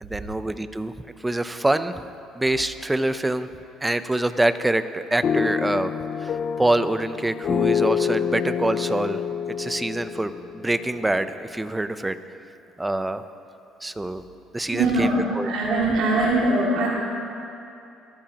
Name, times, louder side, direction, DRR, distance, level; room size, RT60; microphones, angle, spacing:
voice 1, 0.0-0.9 1.2-1.9 2.3-3.5 3.8-5.9 6.2-6.3 6.6-9.2 9.6-12.2 12.8-13.2 13.8-14.2 14.5-15.5, right 1 dB, 10° right, 11 dB, 0.6 m, -25 dB
sound 1, 5.2-11.3, left 7 dB, 45° left, 0.5 m, -27 dB
voice 2, 14.7-16.9, right 2 dB, 70° right, -6 dB, 2.5 m, -22 dB
22.0 x 14.0 x 3.0 m, 2.7 s
cardioid pair, 100°, 0 cm